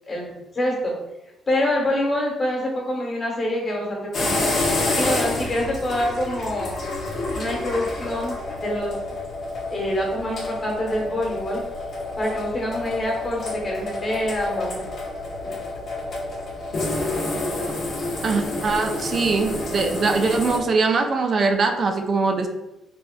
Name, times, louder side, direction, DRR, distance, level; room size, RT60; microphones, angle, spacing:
voice 1, 0.1-0.9 1.5-4.4 4.9-6.8 7.3-8.9 9.7-11.6 12.2-14.8 15.4-15.5, left 1 dB, 35° left, -2 dB, 1.1 m, -26 dB
sound 1, 4.1-20.6, left 2 dB, 55° left, 0.9 m, -28 dB
voice 2, 18.2-22.5, right 4 dB, 50° right, 5 dB, 0.4 m, -22 dB
3.3 x 2.4 x 2.2 m, 0.96 s
cardioid pair, 90°, 0 cm